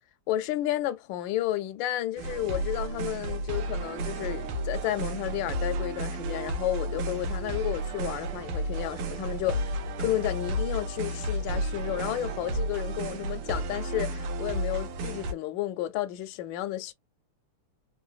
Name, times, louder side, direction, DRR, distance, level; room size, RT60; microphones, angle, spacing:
voice 1, 0.3-9.7 10.0-16.9, left 13 dB, 75° left, 1.1 m, -32 dB
sound 1, 2.2-15.3, right 1 dB, 85° right, 1.6 m, -32 dB
3.9 x 2.1 x 2.3 m
omnidirectional pair, 2.4 m